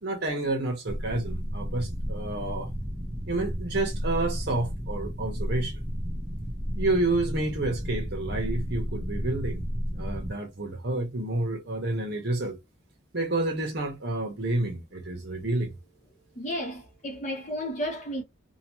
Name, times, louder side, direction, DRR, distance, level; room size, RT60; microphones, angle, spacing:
voice 1, 0.0-2.7 3.3-5.8 6.8-9.6 9.9-12.6 13.1-15.7, right 2 dB, 55° right, 0.9 m, -29 dB
sound 1, 0.9-10.3, equal, 10° right, 0.7 m, -32 dB
voice 2, 16.4-18.2, equal, 35° left, 0.7 m, -33 dB
2.8 x 2.2 x 2.9 m
head